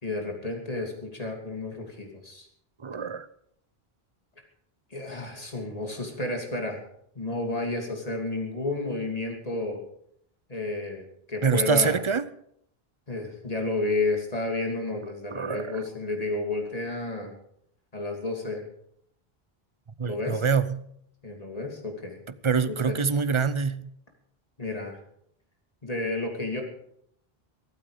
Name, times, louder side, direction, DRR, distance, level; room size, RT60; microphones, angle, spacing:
voice 1, 0.0-2.5 4.9-6.8 7.1-9.8 10.5-11.0 11.3-11.9 13.1-17.3 17.9-18.7 20.0-20.4 21.2-22.2 22.9-23.0 24.6-25.0 25.8-26.6, left 2 dB, 40° left, 1 dB, 3.0 m, -31 dB
voice 2, 2.8-3.3 11.4-12.2 15.3-15.8 20.0-20.9 22.4-23.9, right 5 dB, 35° right, 15 dB, 0.7 m, -25 dB
23.5 x 8.8 x 5.1 m, 0.70 s
omnidirectional pair, 1.0 m